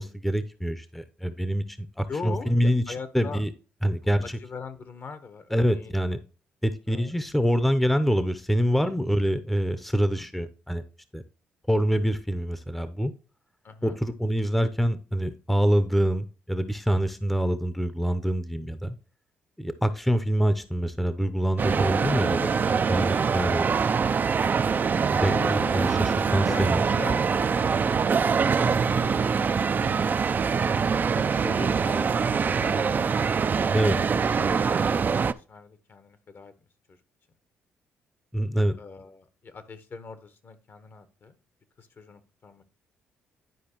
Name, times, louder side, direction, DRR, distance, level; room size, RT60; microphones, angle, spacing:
voice 1, 0.0-2.8 3.1-3.5 3.8-4.4 5.5-6.2 6.6-10.8 11.1-11.2 11.7-13.1 13.8-18.9 19.6-23.7 25.1-26.8 33.7-34.0 38.3-38.8, equal, 5° left, 11 dB, 0.7 m, -25 dB
voice 2, 2.1-3.4 4.2-6.0 6.9-7.1 8.7-9.0 10.1-10.3 13.6-14.0 25.2-25.8 26.3-29.2 29.7-30.2 31.1-33.2 34.0-36.5 36.9-37.0 38.8-41.4 41.8-42.6, left 4 dB, 50° left, 11 dB, 1.1 m, -41 dB
sound 1, 21.6-35.3, right 6 dB, 40° right, 0.4 m, -24 dB
10.5 x 4.7 x 3.0 m, 0.35 s
supercardioid pair, 55°, 5 cm